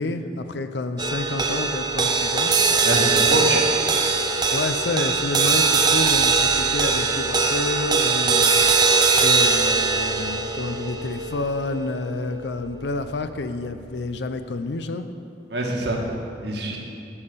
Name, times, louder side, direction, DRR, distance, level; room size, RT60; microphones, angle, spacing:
voice 1, 0.0-2.5 3.7-3.9 4.5-8.6 9.2-15.1, left 2 dB, 75° left, 9 dB, 0.6 m, -29 dB
sound 1, 1.0-13.5, right 4 dB, 25° right, 0.7 m, -21 dB
voice 2, 2.8-3.6 15.5-16.0 16.4-16.8, right 1 dB, 75° right, 0 dB, 1.5 m, -24 dB
11.5 x 5.5 x 6.7 m, 2.5 s
head